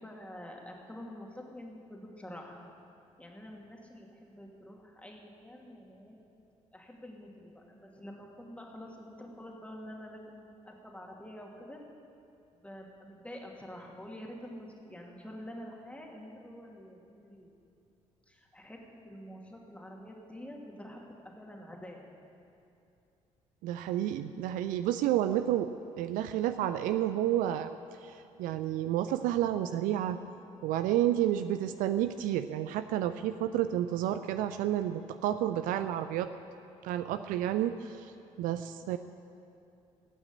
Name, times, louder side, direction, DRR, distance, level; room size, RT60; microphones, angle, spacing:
voice 1, 0.0-2.7 3.2-6.2 6.7-11.8 12.6-17.5 18.3-22.1, left 1 dB, 10° left, 0 dB, 2.4 m, -47 dB
voice 2, 23.6-27.7 28.0-30.2 30.6-36.3 36.8-38.1 38.4-39.0, right 12 dB, 55° right, 10 dB, 0.4 m, -30 dB
14.5 x 8.9 x 8.5 m, 2.7 s
figure-of-eight pair, 45°, 17 cm